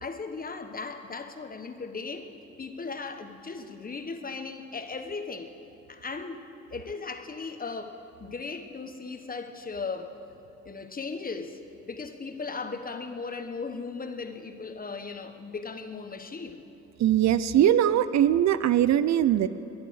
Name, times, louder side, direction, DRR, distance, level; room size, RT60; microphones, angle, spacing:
voice 1, 0.0-2.3 2.6-5.5 5.9-10.1 10.6-11.6 11.9-16.6, left 4 dB, 30° left, 7 dB, 1.3 m, -37 dB
voice 2, 17.0-19.5, right 11 dB, 65° right, 14 dB, 0.6 m, -21 dB
20.0 x 11.0 x 6.5 m, 3.0 s
cardioid pair, 90°, 30 cm